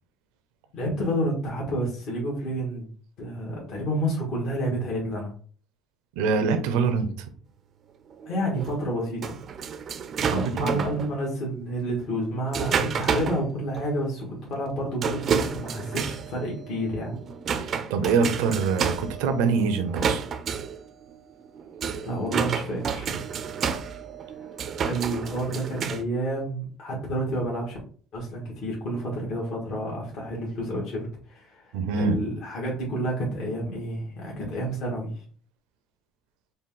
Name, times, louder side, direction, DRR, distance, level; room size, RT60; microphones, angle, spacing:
voice 1, 0.7-2.9 3.2-5.3 8.2-9.4 10.3-17.1 22.0-23.2 24.8-27.8 28.1-35.2, right 1 dB, 60° left, -3 dB, 1.5 m, -30 dB
voice 2, 6.2-7.1 10.3-10.7 17.9-20.2 31.7-32.2, right 5 dB, 85° right, 8 dB, 0.7 m, -24 dB
sound 1, 8.1-11.1 11.9-13.4 13.8-13.9 14.2-14.3 15.0-26.0, right 6 dB, 45° right, 0.5 m, -30 dB
4.1 x 2.2 x 3.8 m, 0.43 s
supercardioid pair, 100°, 0 cm